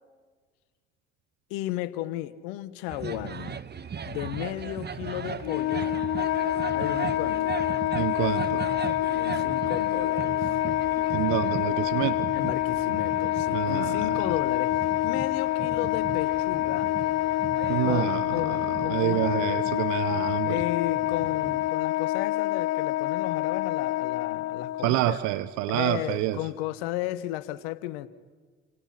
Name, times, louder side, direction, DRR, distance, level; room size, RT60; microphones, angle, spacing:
voice 1, 1.5-3.6 4.1-5.9 6.7-7.5 9.1-10.5 12.3-16.9 17.9-19.3 20.4-25.2 25.7-28.1, left 15 dB, 75° left, 16 dB, 1.2 m, -34 dB
sound 1, 2.9-21.7, right 7 dB, 35° right, 1.2 m, -38 dB
Wind instrument woodwind instrument, 5.4-24.9, left 15 dB, 55° left, 0.7 m, -27 dB
voice 2, 7.9-8.7 11.1-12.3 13.5-14.1 17.7-20.6 24.8-26.4, right 16 dB, 65° right, 14 dB, 1.0 m, -28 dB
29.5 x 26.5 x 5.8 m, 1.5 s
hypercardioid pair, 50°, 31 cm